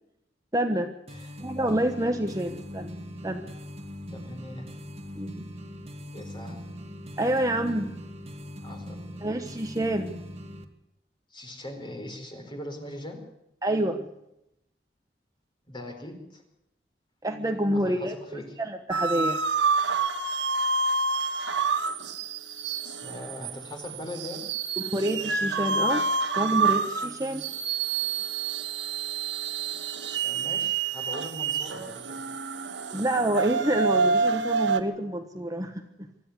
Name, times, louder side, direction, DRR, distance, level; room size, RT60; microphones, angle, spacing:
voice 1, 0.5-0.9 1.4-2.9 3.2-3.5 5.1-5.5 7.2-7.9 9.2-10.1 13.6-14.1 17.2-19.4 24.8-26.0 26.4-27.4 32.9-36.1, right 1 dB, 20° right, 5 dB, 1.3 m, -28 dB
voice 2, 1.1-1.4 4.1-4.7 6.1-6.6 8.6-9.1 11.3-13.2 15.7-16.4 17.7-18.4 23.0-24.5 30.2-32.2, left 1 dB, 25° left, 4 dB, 4.5 m, -40 dB
sound 1, 1.1-10.7, equal, 35° right, 2.2 m, -41 dB
sound 2, 18.9-34.8, right 4 dB, 75° right, 1.6 m, -28 dB
25.0 x 13.5 x 9.8 m, 0.83 s
head